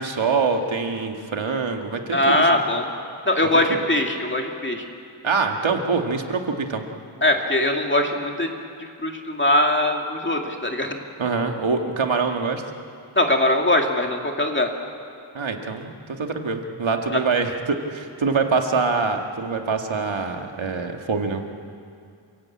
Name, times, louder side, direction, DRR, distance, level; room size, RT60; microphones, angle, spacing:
voice 1, 0.0-2.5 5.2-6.8 11.2-12.6 15.3-21.5, right 4 dB, 65° right, 4 dB, 2.2 m, -24 dB
voice 2, 2.1-2.9 3.3-4.8 7.2-8.5 8.8-11.0 13.1-14.7 17.1-17.2, left 1 dB, 20° left, 2 dB, 2.3 m, -21 dB
28.5 x 16.5 x 8.7 m, 2.4 s
wide cardioid pair, 110°, 50 cm